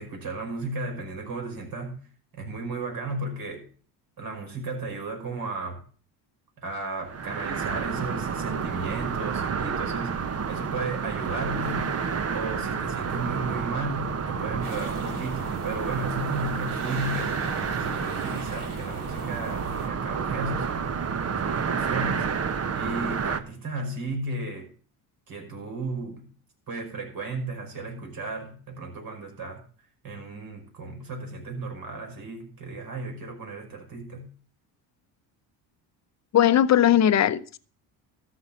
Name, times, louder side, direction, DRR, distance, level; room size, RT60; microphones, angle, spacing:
voice 1, 0.0-2.0 2.3-3.7 4.2-5.8 6.6-11.9 12.3-17.4 17.7-20.9 21.3-22.3 22.7-24.7 25.3-26.3 26.7-29.6 30.0-34.3, right 2 dB, 45° right, 5.5 m, -34 dB
sound 1, 7.0-23.4, right 6 dB, 30° right, 1.1 m, -30 dB
sound 2, 14.6-19.9, right 3 dB, 85° right, 4.6 m, -40 dB
voice 2, 36.3-37.6, left 10 dB, 35° left, 0.8 m, -19 dB
13.5 x 6.4 x 7.0 m
supercardioid pair, 90°, 46 cm